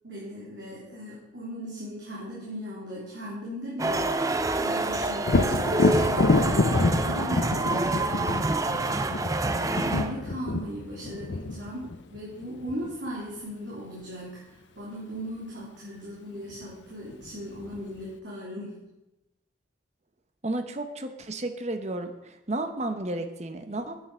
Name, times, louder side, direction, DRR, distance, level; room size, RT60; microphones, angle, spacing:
voice 1, 0.0-8.4 9.8-14.5 14.8-18.8, equal, 70° right, -7 dB, 3.2 m, -38 dB
sound 1, 3.8-10.2, right 2 dB, 15° right, 0.5 m, -27 dB
Thunder, 5.2-12.9 16.5-16.6 17.1-18.0, left 3 dB, 70° left, 0.7 m, -27 dB
voice 2, 20.4-24.0, right 2 dB, 35° right, 8 dB, 0.9 m, -32 dB
9.3 x 7.7 x 6.2 m, 0.95 s
head